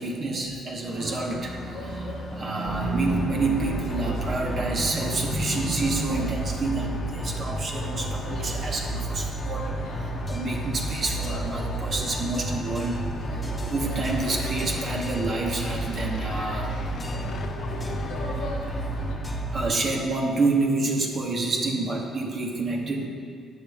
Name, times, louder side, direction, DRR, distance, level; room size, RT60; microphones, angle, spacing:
voice 1, 0.0-9.7 10.0-16.8 18.1-18.2 18.5-18.9 19.5-23.1, right 3 dB, 45° right, 0 dB, 1.0 m, -28 dB
sound 1, 0.8-19.2, left 2 dB, 90° left, 1.1 m, -40 dB
sound 2, 2.7-19.8, right 1 dB, 25° left, 1.3 m, -31 dB
sound 3, 14.0-18.6, left 6 dB, 70° left, 0.5 m, -41 dB
8.2 x 6.5 x 3.5 m, 2.1 s
cardioid pair, 90°, 0 cm